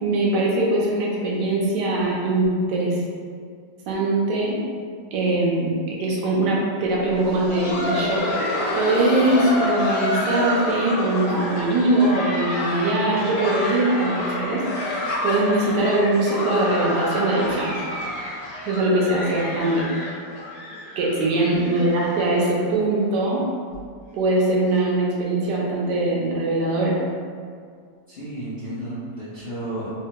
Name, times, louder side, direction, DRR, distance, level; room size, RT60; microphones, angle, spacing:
voice 1, 0.0-3.0 3.9-4.6 5.1-8.2 8.7-14.6 15.2-17.8 18.6-19.9 21.0-23.4 24.1-27.0, right 2 dB, 75° right, -4 dB, 1.2 m, -22 dB
Laughter, 7.1-22.7 23.0-23.1 23.7-23.8 24.4-24.6 25.6-25.7, left 1 dB, 90° left, 1.3 m, -28 dB
voice 2, 21.1-21.5 28.1-30.0, right 1 dB, 55° left, -13 dB, 0.6 m, -33 dB
3.3 x 2.2 x 2.8 m, 2.1 s
omnidirectional pair, 1.9 m